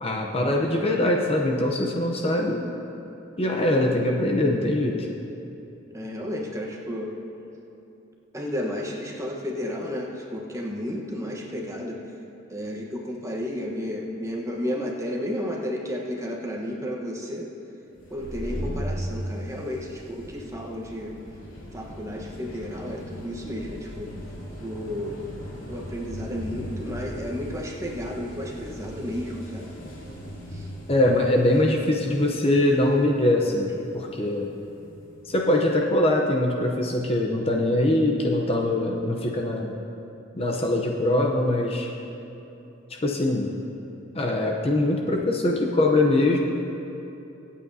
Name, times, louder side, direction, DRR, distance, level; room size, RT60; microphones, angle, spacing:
voice 1, 0.0-2.7 3.4-5.1 30.9-34.6 35.3-39.8 40.3-41.9 42.9-43.5 44.1-46.4, left 1 dB, 30° left, 0 dB, 0.7 m, -23 dB
voice 2, 5.9-7.1 8.3-12.0 12.5-17.5 18.1-21.1 21.7-24.1 24.6-25.2 25.7-29.7 30.5-30.7 33.8-33.9, equal, 15° right, -1 dB, 1.1 m, -32 dB
sound 1, 18.0-35.4, equal, 80° left, 2.9 m, -38 dB
24.5 x 8.5 x 2.7 m, 2.9 s
head